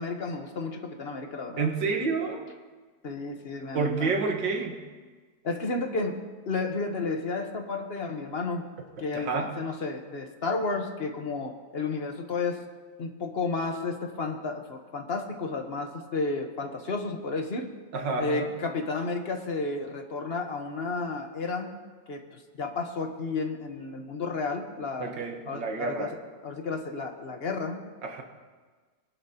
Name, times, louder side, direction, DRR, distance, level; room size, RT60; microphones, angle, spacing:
voice 1, 0.0-1.7 3.0-4.1 5.4-6.2 6.5-8.6 9.0-12.6 13.0-17.7 18.2-21.7 22.1-25.1 25.5-26.1 26.4-27.8, left 3 dB, 40° left, 4 dB, 1.2 m, -32 dB
voice 2, 1.6-2.5 3.7-4.8 9.1-9.6 17.9-18.5 25.0-26.2 28.0-28.2, right 4 dB, 75° right, 3 dB, 2.1 m, -29 dB
22.0 x 12.0 x 2.9 m, 1.4 s
omnidirectional pair, 2.0 m